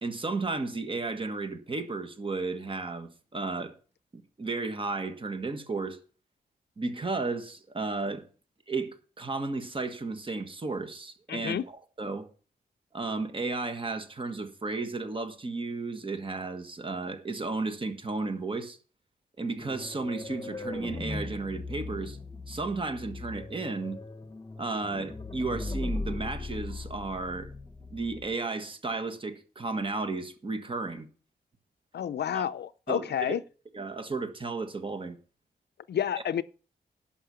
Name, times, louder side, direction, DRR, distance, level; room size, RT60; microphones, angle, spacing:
voice 1, 0.0-3.7 4.1-6.0 6.8-8.2 8.7-12.3 12.9-18.8 19.4-22.2 22.5-24.0 24.6-27.5 27.9-31.1 32.3-32.4 32.9-33.4 33.7-35.2, right 3 dB, 30° right, 1.5 m, -33 dB
voice 2, 11.3-11.6 31.9-33.4 35.9-36.4, left 9 dB, 75° left, 0.5 m, -30 dB
sound 1, 19.6-28.3, left 3 dB, 20° left, 1.2 m, -38 dB
11.5 x 5.8 x 6.9 m
wide cardioid pair, 130°, 18 cm